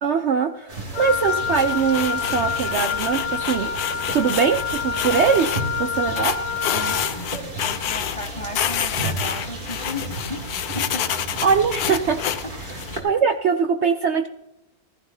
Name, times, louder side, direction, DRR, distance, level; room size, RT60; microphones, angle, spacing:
voice 1, 0.0-3.7 4.1-5.5 5.8-6.4 11.4-12.2 12.6-14.3, right 6 dB, 65° right, 8 dB, 0.7 m, -22 dB
sound 1, 0.7-13.0, right 1 dB, 30° right, 2.2 m, -34 dB
Wind instrument woodwind instrument, 0.9-7.2, left 6 dB, 85° left, 1.6 m, -28 dB
sound 2, 1.5-5.6 6.2-8.3 8.5-13.0, left 10 dB, 70° left, 1.2 m, -28 dB
voice 2, 6.7-11.1, left 2 dB, 55° left, 6 dB, 0.3 m, -35 dB
15.0 x 14.5 x 2.7 m, 0.93 s
omnidirectional pair, 1.7 m